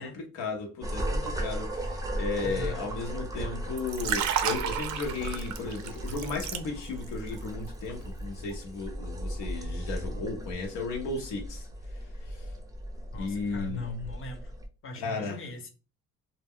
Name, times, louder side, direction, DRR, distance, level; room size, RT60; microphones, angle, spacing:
voice 1, 0.3-11.7 12.3-12.4 13.1-13.8 14.9-15.4, left 3 dB, 90° left, 0.7 m, -35 dB
sound 1, 0.8-14.7, equal, 10° right, 0.4 m, -36 dB
voice 2, 2.4-2.8 13.1-14.5 14.8-15.7, left 2 dB, 45° left, 0.7 m, -39 dB
Liquid, 3.7-7.1 7.4-7.7, right 9 dB, 70° right, 0.4 m, -32 dB
2.1 x 2.0 x 3.5 m
cardioid pair, 90°, 30 cm